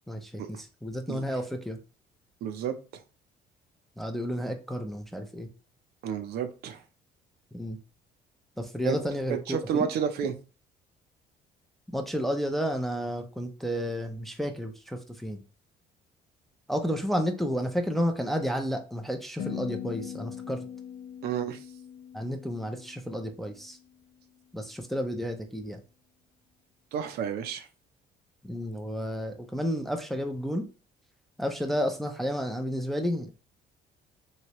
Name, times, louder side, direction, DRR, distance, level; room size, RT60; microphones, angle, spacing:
voice 1, 0.1-1.8 4.0-5.5 7.5-7.8 8.6-9.9 11.9-15.4 16.7-20.6 22.1-23.8 24.5-25.8 28.4-30.7 31.4-33.3, equal, ahead, 0.5 m, -31 dB
voice 2, 2.4-2.8 6.0-6.8 8.8-9.0 9.3-10.3 21.2-21.6 26.9-27.7, right 8 dB, 70° right, 0.5 m, -30 dB
sound 1, 19.4-23.7, left 10 dB, 60° left, 0.4 m, -41 dB
3.1 x 2.7 x 2.9 m
cardioid pair, 110°, 17 cm